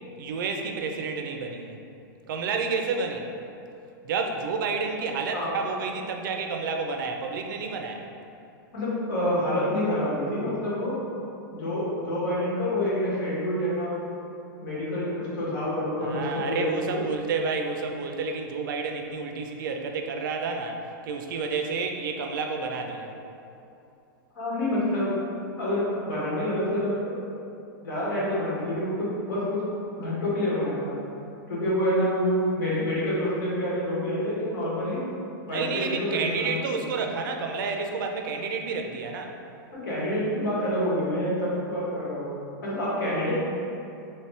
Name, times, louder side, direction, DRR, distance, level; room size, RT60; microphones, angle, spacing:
voice 1, 0.2-1.8 2.3-3.3 4.0-8.0 16.0-20.8 21.0-23.1 35.5-39.3, right 4 dB, 70° right, 3 dB, 0.4 m, -30 dB
voice 2, 8.7-10.9 11.5-14.0 14.6-17.0 24.3-25.1 25.6-27.2 27.8-29.6 29.9-30.9 31.5-35.0 35.5-36.8 39.7-42.3 42.6-43.3, left 1 dB, 75° left, -8 dB, 1.5 m, -27 dB
3.0 x 2.9 x 3.2 m, 2.7 s
supercardioid pair, 150°, 11 cm